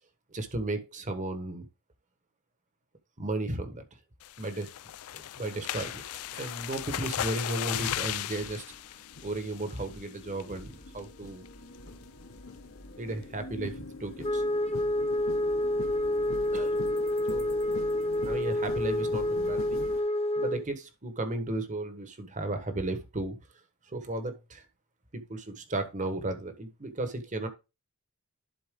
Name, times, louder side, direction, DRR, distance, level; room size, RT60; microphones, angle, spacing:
voice 1, 0.3-1.7 3.2-3.8 4.4-4.7 5.1-8.6 9.2-11.4 13.0-14.4 16.5-16.8 17.3-17.5 18.2-19.8 20.4-23.4 23.9-24.6 25.1-27.5, right 2 dB, 35° right, 8 dB, 1.3 m, -34 dB
sound 1, 4.2-10.0 10.4-10.7 11.0-11.1 11.5-11.8, left 12 dB, 75° left, 0.4 m, -36 dB
sound 2, 4.9-5.0 5.7-20.0, left 2 dB, 60° left, 1.5 m, -45 dB
Wind instrument woodwind instrument, 14.2-20.7, left 1 dB, 30° left, 0.7 m, -28 dB
11.5 x 4.1 x 3.7 m, 0.27 s
head